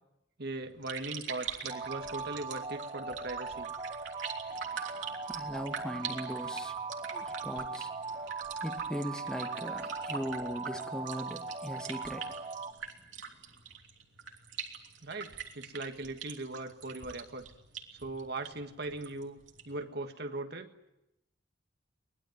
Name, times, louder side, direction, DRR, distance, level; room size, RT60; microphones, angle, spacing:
voice 1, 0.4-3.7 15.0-17.5 17.9-20.7, right 2 dB, 60° right, 1.7 m, -39 dB
sound 1, 0.6-19.8, right 7 dB, 80° right, 3.1 m, -44 dB
sound 2, 1.7-12.7, right 4 dB, 30° right, 1.1 m, -39 dB
voice 2, 4.5-6.8 7.1-12.4, equal, 5° left, 1.5 m, -40 dB
23.5 x 20.5 x 9.3 m
head